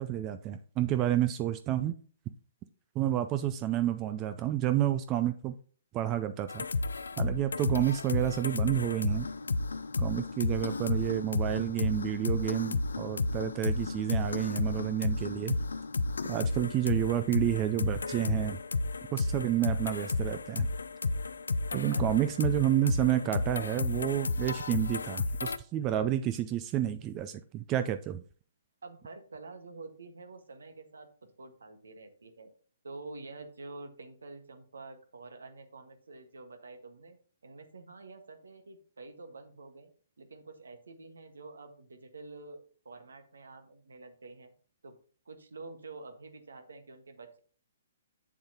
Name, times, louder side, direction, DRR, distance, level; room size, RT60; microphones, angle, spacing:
voice 1, 0.0-1.9 3.0-5.5 5.9-6.6 7.2-9.3 10.0-15.6 16.3-18.6 19.1-20.7 21.7-28.2, right 12 dB, 25° right, 0.4 m, -30 dB
sound 1, 6.5-25.6, left 3 dB, 75° left, 0.4 m, -32 dB
voice 2, 21.7-22.0 28.8-31.1 31.4-32.5 32.8-37.2 37.4-39.9 40.2-44.5 44.8-44.9 45.2-47.4, right 3 dB, 75° right, 1.5 m, -48 dB
7.9 x 7.2 x 2.9 m
figure-of-eight pair, 125°, 0 cm